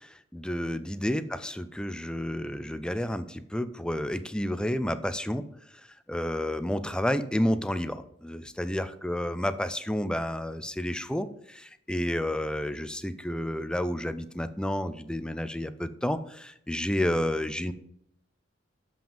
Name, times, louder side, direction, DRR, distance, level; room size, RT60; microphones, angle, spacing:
voice 1, 0.0-5.5 6.1-17.7, left 1 dB, 5° left, 12 dB, 0.5 m, -30 dB
7.1 x 5.9 x 7.2 m, 0.73 s
head